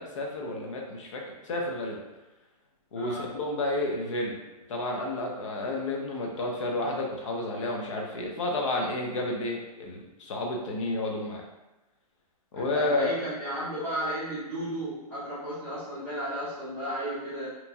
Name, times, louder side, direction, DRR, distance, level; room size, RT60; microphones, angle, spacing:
voice 1, 0.0-2.0 2.9-4.4 4.7-11.4 12.5-13.1, left 2 dB, 50° left, 0 dB, 0.6 m, -31 dB
voice 2, 2.9-3.3 12.5-17.5, right 1 dB, 10° left, -11 dB, 0.7 m, -34 dB
3.0 x 2.6 x 2.3 m, 1.0 s
hypercardioid pair, 170°, 20 cm